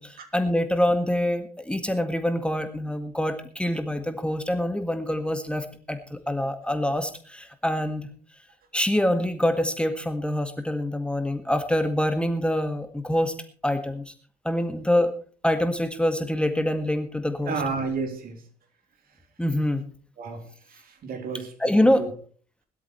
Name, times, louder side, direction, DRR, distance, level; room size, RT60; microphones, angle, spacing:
voice 1, 0.0-8.1 8.7-13.3 13.6-14.1 14.4-15.1 15.4-17.5 19.4-19.8 21.6-22.0, left 1 dB, 5° left, 7 dB, 1.8 m, -25 dB
voice 2, 17.4-18.4 20.2-21.5 22.0-22.1, right 4 dB, 50° right, 5 dB, 3.8 m, -31 dB
20.5 x 13.0 x 3.2 m, 0.42 s
hypercardioid pair, 60°, 20 cm